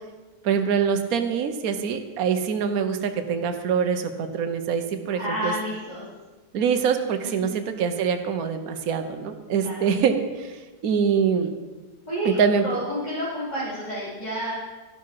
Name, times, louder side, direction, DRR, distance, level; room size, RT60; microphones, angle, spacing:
voice 1, 0.4-5.5 6.5-11.5 12.2-12.6, right 7 dB, 60° right, 7 dB, 1.3 m, -24 dB
voice 2, 5.1-6.1 7.2-7.6 9.6-9.9 12.1-14.5, equal, 25° left, -11 dB, 4.3 m, -30 dB
13.0 x 11.5 x 4.8 m, 1.2 s
omnidirectional pair, 1.8 m